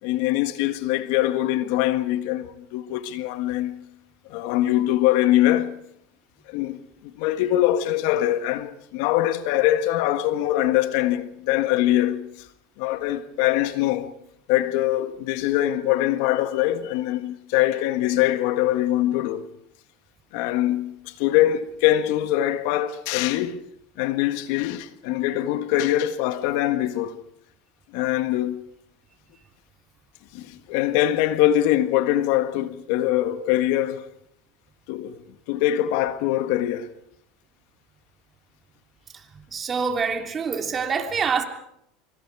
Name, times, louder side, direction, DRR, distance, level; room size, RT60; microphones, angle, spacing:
voice 1, 0.0-3.8 4.3-5.8 6.5-12.3 12.8-14.1 14.5-19.4 20.3-23.6 24.0-27.1 27.9-28.6 30.3-34.1 34.9-35.2 35.5-36.9, left 13 dB, 70° left, 1.6 m, -23 dB
voice 2, 39.3-41.4, right 5 dB, 30° right, 3.2 m, -26 dB
25.5 x 24.5 x 4.9 m
supercardioid pair, 110°, 0 cm